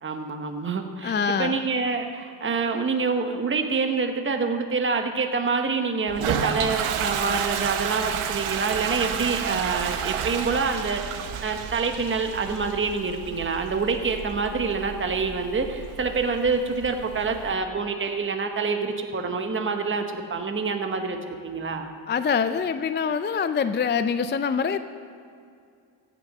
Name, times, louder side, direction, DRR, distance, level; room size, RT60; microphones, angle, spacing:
voice 1, 0.0-21.9, right 4 dB, 25° right, 5 dB, 1.0 m, -26 dB
voice 2, 1.0-1.6 22.1-24.8, left 6 dB, 25° left, 10 dB, 0.3 m, -25 dB
Toilet flush, 6.1-17.5, right 8 dB, 85° right, 0.9 m, -31 dB
16.0 x 6.2 x 6.6 m, 2.4 s
cardioid pair, 80°, 49 cm